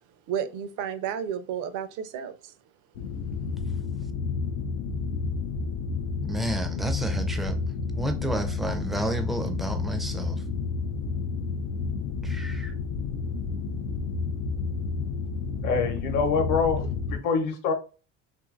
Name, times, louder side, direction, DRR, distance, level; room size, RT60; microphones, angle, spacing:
voice 1, 0.3-2.5, right 8 dB, 55° right, 0.5 m, -32 dB
sound 1, 2.9-17.2, left 4 dB, 80° left, 0.5 m, -30 dB
voice 2, 6.2-7.6 7.9-10.4 12.2-12.7, right 1 dB, ahead, 0.4 m, -31 dB
voice 3, 15.6-16.8 17.2-17.7, left 5 dB, 55° left, 0.9 m, -24 dB
2.7 x 2.6 x 2.4 m
hypercardioid pair, 75°, 38 cm